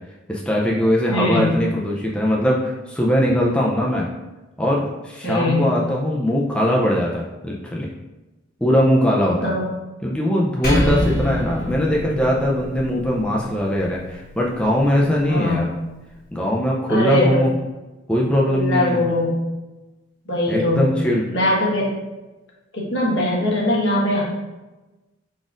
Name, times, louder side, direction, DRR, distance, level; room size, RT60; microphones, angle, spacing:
voice 1, 0.3-4.1 4.6-7.9 8.6-9.5 10.0-15.7 16.3-17.5 18.1-19.0 20.5-21.2, equal, 5° left, -3 dB, 0.4 m, -20 dB
voice 2, 1.1-1.5 5.2-5.7 9.4-9.7 15.3-15.7 16.9-17.5 18.5-19.4 20.3-20.9 21.3-21.9 22.7-24.2, left 1 dB, 70° left, -4 dB, 1.2 m, -21 dB
Percussion, 10.6-15.4, left 1 dB, 50° left, 1.3 m, -27 dB
4.9 x 4.0 x 2.5 m, 1.1 s
head